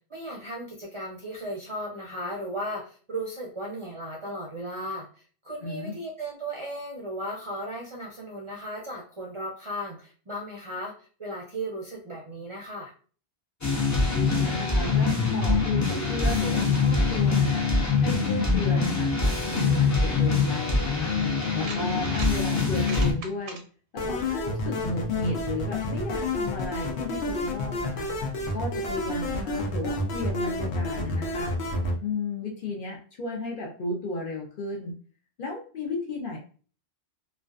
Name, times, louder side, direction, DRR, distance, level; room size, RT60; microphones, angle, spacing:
voice 1, 0.1-10.9 11.2-12.9, right 1 dB, 40° right, -2 dB, 0.4 m, -36 dB
voice 2, 5.6-5.9 14.1-23.6 23.9-28.1 28.5-31.6 32.0-34.9 35.4-36.4, left 2 dB, 60° left, 1 dB, 0.7 m, -34 dB
sound 1, 13.6-23.1, left 4 dB, 30° left, 0.3 m, -24 dB
sound 2, 21.4-22.3 22.7-23.6, right 4 dB, 90° right, 0.9 m, -40 dB
sound 3, 24.0-32.0, left 1 dB, 90° left, 0.9 m, -29 dB
2.4 x 2.2 x 2.3 m, 0.40 s
omnidirectional pair, 1.1 m